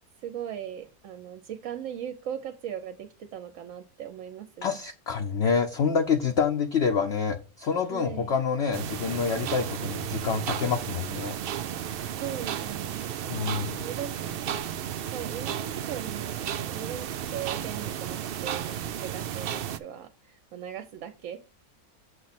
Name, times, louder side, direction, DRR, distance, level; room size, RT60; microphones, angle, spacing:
voice 1, 0.2-4.8 7.9-8.4 12.2-21.5, right 9 dB, 65° right, 7 dB, 0.9 m, -39 dB
voice 2, 4.6-11.4 13.3-13.8, left 6 dB, 55° left, 5 dB, 0.8 m, -27 dB
sound 1, 8.7-19.8, right 10 dB, 85° right, 0.5 m, -33 dB
7.7 x 3.2 x 5.8 m, 0.32 s
omnidirectional pair, 1.6 m